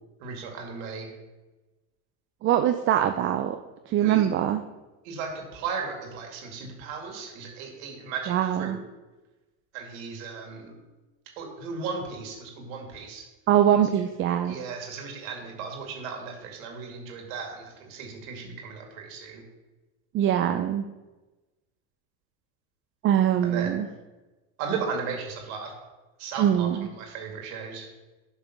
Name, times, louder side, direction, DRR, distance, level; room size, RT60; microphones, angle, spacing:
voice 1, 0.2-1.1 4.0-4.3 5.0-8.8 9.7-10.7 11.4-13.3 14.5-19.4 23.4-23.8 24.6-25.7 26.2-26.7 27.0-27.9, right 5 dB, 75° right, 2 dB, 2.2 m, -36 dB
voice 2, 2.4-3.6 3.9-4.6 8.3-8.8 13.5-14.6 20.1-20.8 23.0-23.9 26.4-26.9, right 10 dB, 30° right, 7 dB, 0.4 m, -23 dB
6.7 x 5.5 x 6.0 m, 1.1 s
supercardioid pair, 110°, 40 cm